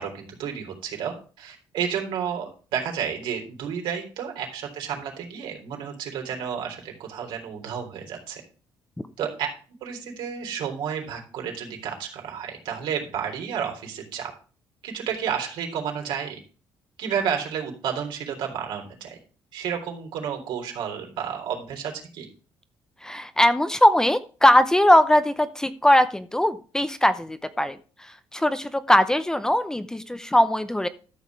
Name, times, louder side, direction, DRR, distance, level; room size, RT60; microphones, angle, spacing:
voice 1, 0.0-8.4 9.2-9.5 9.8-14.3 14.8-16.4 17.0-19.2 19.5-22.3, right 7 dB, 75° right, 2 dB, 3.6 m, -31 dB
voice 2, 23.0-30.9, left 1 dB, 5° left, 11 dB, 0.7 m, -20 dB
13.0 x 6.4 x 4.8 m, 0.37 s
cardioid pair, 130°, 8 cm